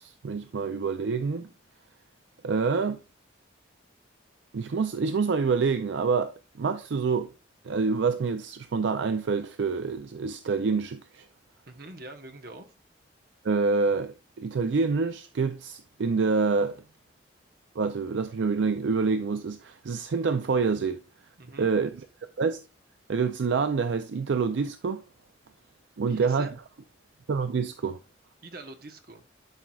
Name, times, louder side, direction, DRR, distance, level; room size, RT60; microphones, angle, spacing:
voice 1, 0.0-1.5 2.4-3.0 4.5-7.3 7.6-11.3 13.4-16.8 17.8-21.0 21.6-21.9 22.4-22.6 23.1-25.0 26.0-26.5 27.3-28.0, right 4 dB, 70° right, 0.4 m, -27 dB
voice 2, 11.7-12.7 21.4-21.7 26.0-26.5 28.4-29.2, right 2 dB, 50° right, 1.0 m, -44 dB
11.5 x 4.6 x 2.3 m
head